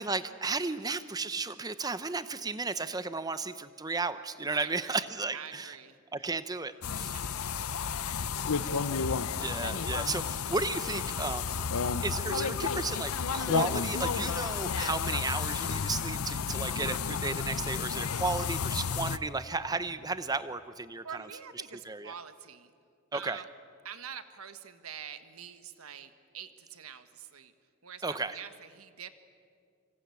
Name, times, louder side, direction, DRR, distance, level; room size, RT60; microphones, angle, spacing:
voice 1, 0.0-5.7 6.1-7.2 9.4-11.6 12.0-21.0 21.9-22.1 23.1-23.4 28.0-28.4, right 3 dB, 15° right, 13 dB, 0.8 m, -34 dB
voice 2, 4.5-6.3 7.1-7.8 8.1-8.9 21.0-22.7 23.1-23.5 23.8-27.5 27.8-29.1, right 8 dB, 80° right, 10 dB, 1.4 m, -46 dB
sound 1, 6.8-19.2, left 6 dB, 85° left, 0.8 m, -32 dB
27.5 x 25.5 x 8.4 m, 2.3 s
head